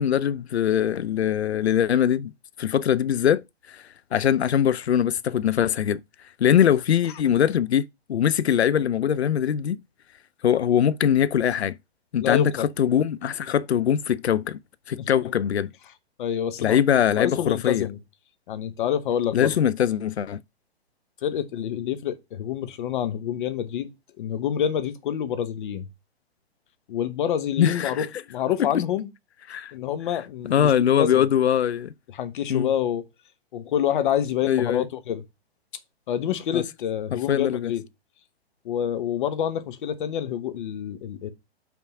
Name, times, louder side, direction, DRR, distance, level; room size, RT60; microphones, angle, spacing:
voice 1, 0.0-2.3 2.6-3.8 4.1-6.0 6.4-9.8 10.4-11.8 12.1-14.6 14.9-15.7 16.6-17.9 19.3-20.4 27.6-28.1 28.6-28.8 29.5-29.7 30.5-31.9 32.5-32.7 34.4-34.8 36.5-36.6 37.1-37.7, left 9 dB, 85° left, 0.5 m, -22 dB
voice 2, 12.2-12.7 15.0-15.3 16.2-16.8 17.2-18.0 18.5-19.5 21.2-23.9 24.2-25.9 26.9-29.1 29.7-31.2 32.1-33.0 33.5-35.2 36.1-37.8 38.6-41.3, left 9 dB, 50° left, 1.2 m, -27 dB
5.8 x 3.7 x 5.9 m
figure-of-eight pair, 120°, 32 cm